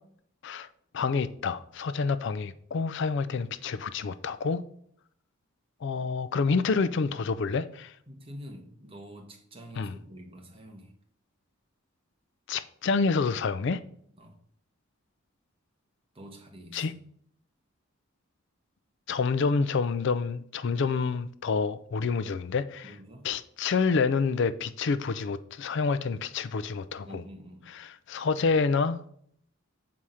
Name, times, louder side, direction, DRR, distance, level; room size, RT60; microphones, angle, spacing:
voice 1, 0.9-4.6 5.8-7.9 9.8-9.9 12.5-13.8 16.7-16.9 19.1-22.9 23.2-27.2 27.8-29.0, left 4 dB, 60° left, 0.4 m, -28 dB
voice 2, 8.1-10.9 14.2-14.4 16.1-17.0 22.8-23.3 27.0-27.7, equal, 25° right, 1.3 m, -47 dB
7.6 x 4.8 x 5.6 m
head